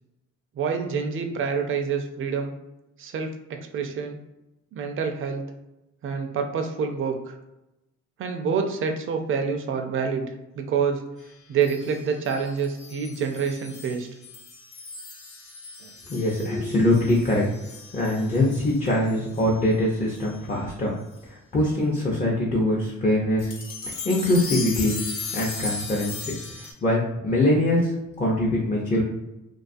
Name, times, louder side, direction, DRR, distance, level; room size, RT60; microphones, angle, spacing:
voice 1, 0.5-2.5 3.0-4.2 4.7-5.5 6.0-7.3 8.2-10.3 10.5-11.0 11.5-14.1 15.8-15.9, right 6 dB, 45° right, 5 dB, 0.4 m, -27 dB
sound 1, 11.6-19.5 20.2-20.3 21.1-21.2 23.4-26.7, left 4 dB, 70° left, 0.9 m, -37 dB
voice 2, 16.1-17.5 17.9-21.0 21.3-23.5 24.0-25.0 25.3-26.3 26.8-29.0, left 1 dB, 25° left, -4 dB, 0.5 m, -23 dB
2.3 x 2.3 x 2.5 m, 0.94 s
cardioid pair, 90°, 30 cm